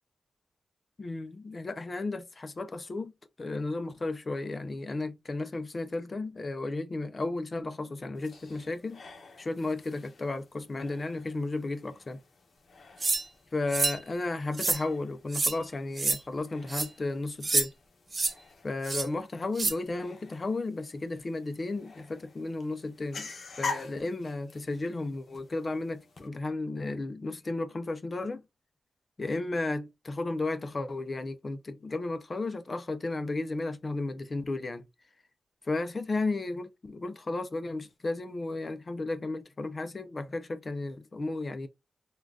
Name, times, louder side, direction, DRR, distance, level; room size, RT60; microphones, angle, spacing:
voice 1, 1.0-3.1 3.4-9.0 9.4-12.2 13.5-17.7 18.6-23.3 23.6-28.4 29.2-34.8 35.6-41.7, left 2 dB, 40° left, 0.5 m, -34 dB
sound 1, 8.1-26.3, left 4 dB, 60° left, 0.9 m, -46 dB
sound 2, 13.0-13.2 13.7-14.0 14.5-14.8 15.3-15.6 16.0-16.2 16.7-16.9 17.4-17.7 18.1-18.3 18.8-19.1 19.6-19.7, right 3 dB, 40° right, 0.7 m, -27 dB
3.7 x 2.4 x 2.3 m
wide cardioid pair, 90°, 0 cm